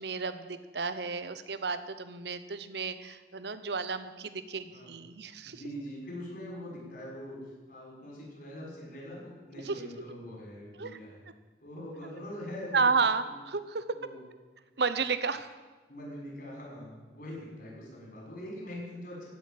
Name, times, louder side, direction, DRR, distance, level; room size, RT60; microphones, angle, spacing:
voice 1, 0.0-5.6 9.6-9.8 10.8-10.9 12.7-14.0 14.8-15.5, right 4 dB, 65° right, 11 dB, 0.9 m, -32 dB
voice 2, 5.4-11.2 11.6-12.9 13.2-13.3 13.9-14.2 15.9-19.3, equal, 55° left, -3 dB, 6.0 m, -43 dB
16.0 x 6.4 x 9.5 m, 1.3 s
head